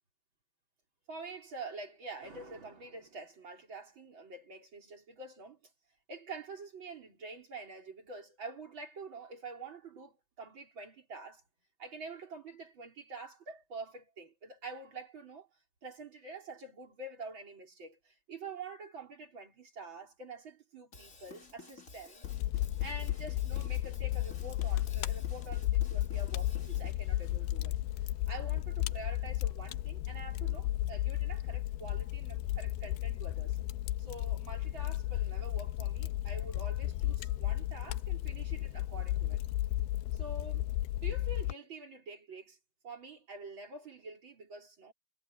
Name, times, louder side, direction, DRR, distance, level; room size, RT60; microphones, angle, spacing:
voice 1, 1.1-5.7 6.1-11.4 11.8-15.5 15.8-22.2 22.8-27.7 28.3-33.6 34.0-39.4 40.1-42.6 42.8-44.9, right 3 dB, 30° right, 4.2 m, -47 dB
Drum kit / Drum, 20.9-26.9, left 3 dB, 25° left, 2.1 m, -53 dB
Fire, 22.2-41.5, left 15 dB, 85° left, 2.4 m, -34 dB
omnidirectional pair, 5.0 m